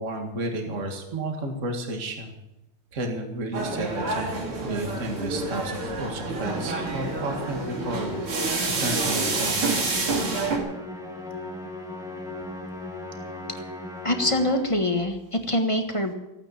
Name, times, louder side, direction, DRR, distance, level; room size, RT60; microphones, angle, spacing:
voice 1, 0.0-2.3 2.9-8.2 8.8-9.9, right 2 dB, 35° right, 4 dB, 2.2 m, -32 dB
sound 1, 3.5-10.6, right 3 dB, 85° right, 3.4 m, -28 dB
Musical instrument, 6.4-14.9, left 1 dB, ahead, 1.8 m, -37 dB
voice 2, 14.0-16.1, left 1 dB, 20° left, 5 dB, 1.1 m, -24 dB
16.0 x 9.0 x 8.5 m, 0.96 s
omnidirectional pair, 2.3 m